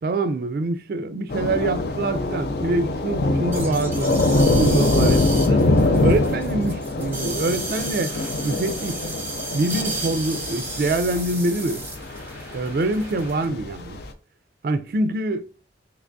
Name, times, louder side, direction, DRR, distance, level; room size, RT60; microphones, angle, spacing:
voice 1, 0.0-4.1 4.5-5.7 6.0-8.1 8.4-9.0 9.5-11.8 12.5-14.0 14.6-15.5, right 2 dB, 55° right, 0.3 m, -25 dB
Thunder / Rain, 1.3-14.1, left 2 dB, 60° left, 0.4 m, -24 dB
sound 1, 3.5-13.4, right 3 dB, 10° right, 0.7 m, -34 dB
3.4 x 3.0 x 2.5 m
head